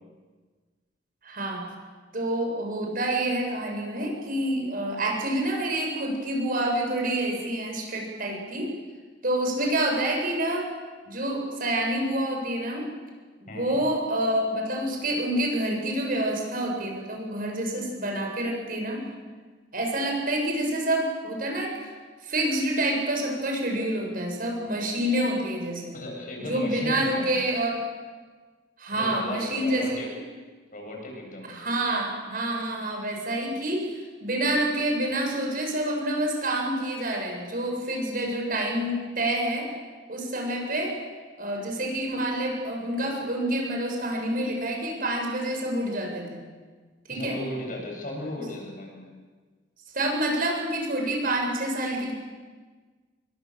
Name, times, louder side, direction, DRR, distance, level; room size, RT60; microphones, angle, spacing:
voice 1, 1.2-1.7 2.1-8.7 9.2-10.7 11.1-12.9 13.5-19.0 19.7-21.9 22.2-26.0 26.5-27.8 28.8-30.2 31.5-39.7 40.1-41.0 41.4-46.4 47.1-47.4 49.9-52.1, right 1 dB, 50° right, 1 dB, 7.0 m, -28 dB
voice 2, 13.5-13.8 25.9-27.3 28.9-30.1 30.7-31.6 47.1-49.2, left 1 dB, 45° left, 1 dB, 7.8 m, -36 dB
28.5 x 23.5 x 7.9 m, 1.4 s
head